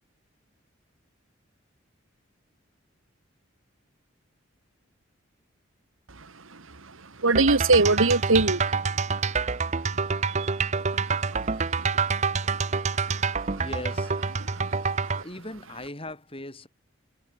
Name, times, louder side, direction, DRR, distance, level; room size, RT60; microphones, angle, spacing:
voice 1, 6.2-8.8 9.9-10.7 10.9-13.6 14.4-15.2, right 3 dB, 80° right, 1.9 m, -27 dB
sound 1, 7.3-15.2, right 4 dB, 35° right, 0.8 m, -27 dB
voice 2, 13.6-14.1 15.2-16.7, left 1 dB, 25° left, 6.5 m, -38 dB
head